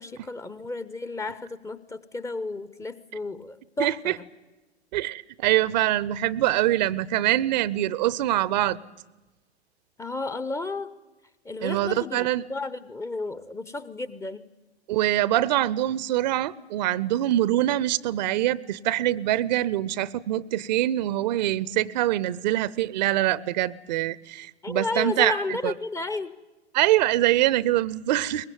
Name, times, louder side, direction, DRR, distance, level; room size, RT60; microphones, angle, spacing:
voice 1, 0.0-4.3 10.0-10.9 11.4-14.4 24.6-26.3, left 3 dB, 10° left, 15 dB, 0.8 m, -32 dB
voice 2, 3.8-4.1 4.9-8.8 11.6-12.4 14.9-25.7 26.7-28.5, right 14 dB, 40° right, 21 dB, 0.8 m, -24 dB
23.0 x 20.5 x 9.3 m, 1.1 s
figure-of-eight pair, 105°, 33 cm